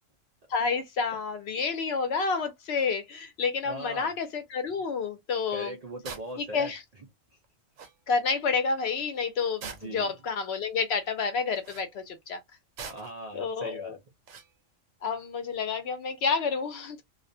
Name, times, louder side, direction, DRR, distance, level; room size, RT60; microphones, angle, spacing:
voice 1, 0.5-5.7 6.4-6.8 8.1-12.4 13.3-14.0 15.0-17.0, left 5 dB, 65° left, 0.7 m, -29 dB
voice 2, 3.6-4.1 5.5-6.7 9.6-10.1 12.8-14.0, right 1 dB, 70° right, 0.3 m, -40 dB
sound 1, 6.0-6.3 7.4-7.5 7.8-8.0 9.6-10.1 11.5-11.9 12.8-13.2 14.3-14.5, right 5 dB, 85° right, 1.0 m, -42 dB
2.3 x 2.1 x 2.5 m
omnidirectional pair, 1.3 m